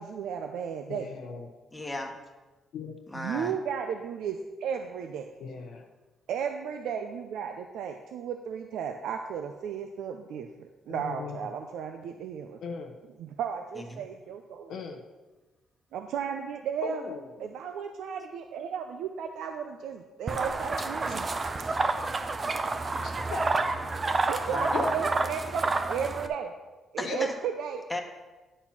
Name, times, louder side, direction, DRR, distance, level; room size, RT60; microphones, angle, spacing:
voice 1, 0.0-1.1 3.1-5.3 6.3-12.6 13.2-14.8 15.9-17.0 17.4-21.2 24.3-26.5 26.9-27.8, right 7 dB, 80° right, 5 dB, 0.5 m, -34 dB
voice 2, 0.9-1.5 2.7-2.9 5.4-5.9 10.9-11.4 12.6-12.9 14.7-15.0 16.8-17.5 21.1-21.3 22.3-22.4 23.0-23.5 24.7-24.9 27.0-27.2, left 5 dB, 75° left, 2 dB, 0.8 m, -37 dB
voice 3, 1.7-2.1 3.1-3.5 13.7-14.0 23.0-23.2 23.8-25.0 27.0-27.3 27.9-28.0, left 1 dB, 10° left, 2 dB, 1.3 m, -36 dB
sound 1, 20.3-26.3, right 3 dB, 30° right, 0.6 m, -29 dB
10.0 x 4.3 x 5.9 m, 1.2 s
cardioid pair, 90°, 0 cm